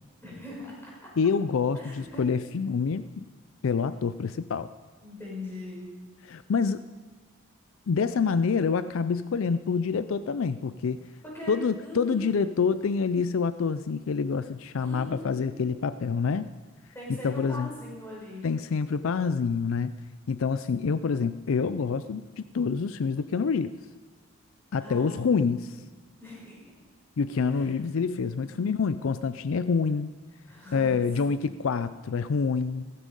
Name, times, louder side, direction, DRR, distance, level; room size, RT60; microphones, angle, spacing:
voice 1, 0.2-0.9 1.7-2.2 5.0-5.9 11.2-12.4 14.8-15.6 16.9-18.4 24.8-25.6 26.2-26.6 27.4-27.8 28.3-28.7 30.5-31.4, left 1 dB, 10° left, -5 dB, 5.9 m, -41 dB
voice 2, 1.2-3.3 3.6-4.7 6.2-6.8 7.9-11.1 11.5-16.5 17.2-17.7 18.4-19.9 20.3-23.7 24.7-25.8 27.2-30.1 30.7-32.8, left 5 dB, 65° left, 13 dB, 0.4 m, -27 dB
16.0 x 14.5 x 5.4 m, 1.3 s
head